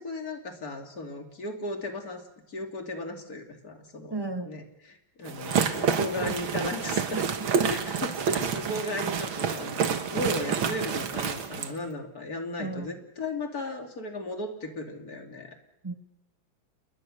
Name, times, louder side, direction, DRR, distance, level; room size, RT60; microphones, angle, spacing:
voice 1, 0.0-4.1 4.5-4.6 5.2-7.2 7.7-15.5, left 2 dB, 50° left, 4 dB, 3.3 m, -36 dB
voice 2, 4.1-4.6 7.1-8.0 12.6-12.9 15.8-15.9, right 2 dB, 15° right, 8 dB, 1.2 m, -35 dB
sound 1, 5.3-11.7, right 6 dB, 85° right, 2.4 m, -28 dB
28.5 x 21.5 x 6.6 m, 0.82 s
omnidirectional pair, 2.1 m